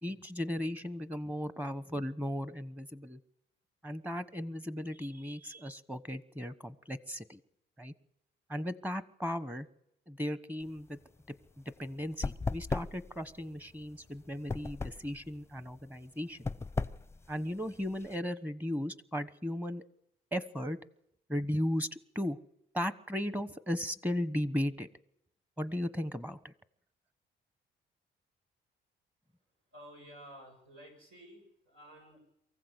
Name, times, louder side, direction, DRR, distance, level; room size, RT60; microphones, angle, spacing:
voice 1, 0.0-3.2 3.8-7.4 7.8-7.9 8.5-9.7 10.1-11.0 11.6-16.5 17.3-19.8 20.3-20.8 21.3-22.4 22.7-24.9 25.6-26.5, equal, 10° right, 15 dB, 1.2 m, -36 dB
sound 1, 10.6-18.2, left 3 dB, 15° left, 0.7 m, -38 dB
voice 2, 29.7-32.2, equal, 80° right, 2 dB, 7.2 m, -52 dB
23.5 x 15.0 x 8.2 m, 0.78 s
cardioid pair, 90°, 20 cm